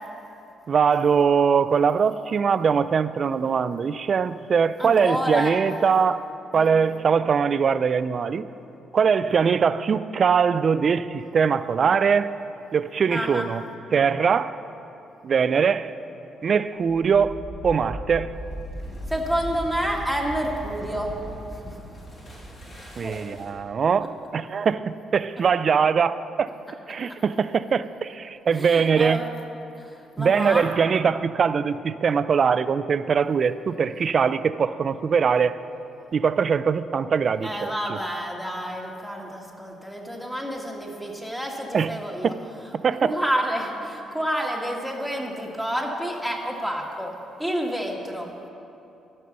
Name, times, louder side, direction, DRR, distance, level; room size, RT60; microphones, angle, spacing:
voice 1, 0.7-6.2 6.5-8.5 8.9-12.3 12.7-13.6 13.9-14.6 15.2-15.9 16.4-17.4 17.6-18.3 23.0-26.5 26.9-29.2 30.2-35.6 36.1-38.0 41.7-42.0 42.2-42.3 42.8-43.1, right 6 dB, 50° right, 14 dB, 0.3 m, -22 dB
voice 2, 4.8-5.5 6.5-6.8 13.1-13.5 19.1-21.1 21.6-21.7 23.0-23.2 28.5-29.3 29.7-30.7 37.4-42.3 43.0-47.1 47.4-48.5, equal, 5° left, 0 dB, 1.5 m, -29 dB
sound 1, 16.9-23.7, equal, 40° left, 2.7 m, -38 dB
13.0 x 5.5 x 6.6 m, 2.8 s
cardioid pair, 90°, 0 cm